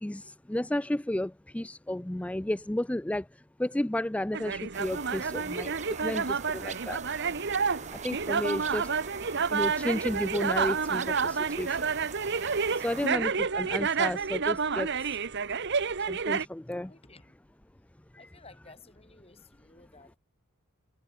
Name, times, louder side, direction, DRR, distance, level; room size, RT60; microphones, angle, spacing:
voice 1, 0.0-3.2 3.6-5.7 6.0-7.0 7.9-8.9 9.5-11.9 12.8-15.1 16.1-16.9 18.2-18.3, left 1 dB, 5° left, 0.3 m, -32 dB
sound 1, 4.3-16.5, right 5 dB, 50° right, 1.0 m, -30 dB
sound 2, 4.7-13.1, right 5 dB, 30° right, 2.0 m, -42 dB
voice 2, 16.8-17.4 18.2-20.2, left 3 dB, 25° left, 6.1 m, -55 dB
head